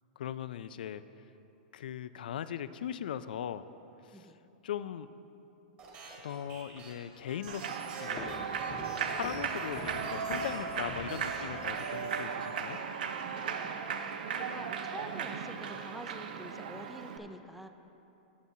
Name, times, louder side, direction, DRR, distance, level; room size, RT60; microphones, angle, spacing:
voice 1, 0.2-1.0 1.7-3.6 4.0-4.3 4.6-5.1 6.2-8.3 9.1-12.8, left 9 dB, 85° left, 14 dB, 0.4 m, -39 dB
sound 1, 5.8-10.8 11.1-12.7, right 3 dB, 35° right, 2.1 m, -50 dB
Human voice / Clapping / Cheering, 7.5-17.2, right 6 dB, 75° right, 0.6 m, -36 dB
sound 2, 8.2-11.9, left 2 dB, 30° left, 0.9 m, -46 dB
voice 2, 13.4-17.7, equal, ahead, 7 dB, 0.4 m, -48 dB
17.0 x 7.1 x 2.8 m, 2.9 s
supercardioid pair, 150°, 5 cm